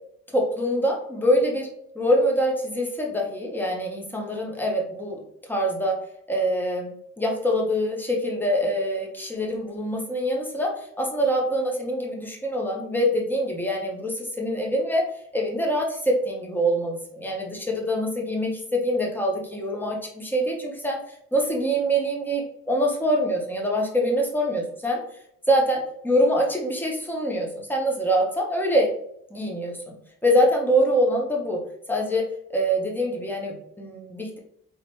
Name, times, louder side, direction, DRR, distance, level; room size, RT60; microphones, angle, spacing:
voice 1, 0.3-1.7 1.9-5.2 5.5-6.0 6.3-6.9 7.2-15.1 15.3-21.0 21.3-25.0 25.5-25.8 26.0-28.9 29.3-30.0 30.2-31.6 31.9-32.2 32.5-34.4, equal, 5° left, -1 dB, 1.2 m, -24 dB
3.9 x 3.2 x 3.2 m, 0.71 s
cardioid pair, 90°, 30 cm